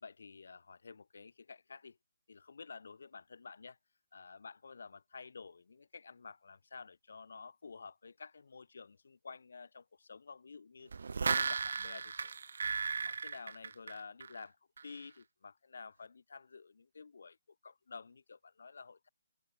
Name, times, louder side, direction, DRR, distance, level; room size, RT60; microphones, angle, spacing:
voice 1, 0.0-2.0 2.3-3.8 4.1-10.9 11.3-12.4 13.0-14.6 14.8-17.4 17.6-19.1, left 5 dB, 65° left, 5.2 m, -51 dB
sound 1, 10.9-14.4 14.8-14.9, right 5 dB, 65° right, 3.8 m, -35 dB
figure-of-eight pair, 140°, 0 cm